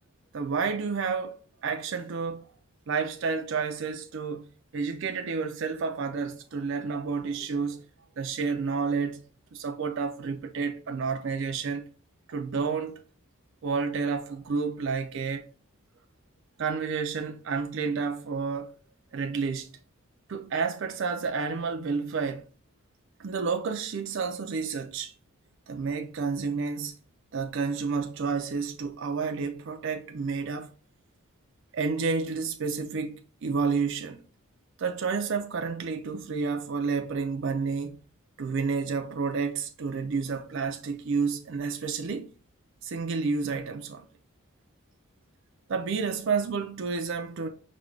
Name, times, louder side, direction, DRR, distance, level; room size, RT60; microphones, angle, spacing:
voice 1, 0.3-2.5 2.9-7.8 8.2-9.2 9.5-11.9 12.3-13.0 13.6-15.5 16.6-18.7 19.1-19.7 20.3-22.5 23.2-25.1 25.7-27.0 27.3-30.7 31.7-34.2 34.8-38.0 38.4-42.3 42.8-44.1 45.7-47.5, right 5 dB, 60° right, 0.4 m, -30 dB
4.9 x 2.3 x 3.2 m
head